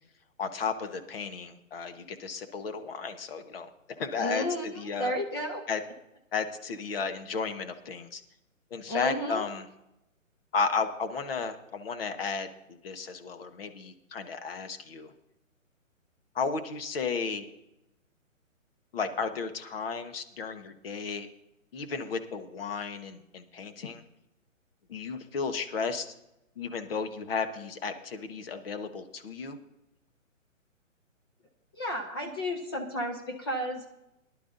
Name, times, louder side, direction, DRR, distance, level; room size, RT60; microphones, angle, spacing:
voice 1, 0.4-3.7 4.0-5.1 5.7-5.8 6.3-8.2 8.7-9.7 10.5-12.5 12.8-15.1 16.3-17.5 18.9-21.3 21.7-24.0 24.9-26.1 26.6-29.6, left 5 dB, 45° left, 8 dB, 1.3 m, -33 dB
voice 2, 4.2-5.6 8.9-9.4 31.7-33.9, equal, 20° left, 2 dB, 0.7 m, -32 dB
19.0 x 11.5 x 2.7 m, 0.88 s
hypercardioid pair, 155°, 40 cm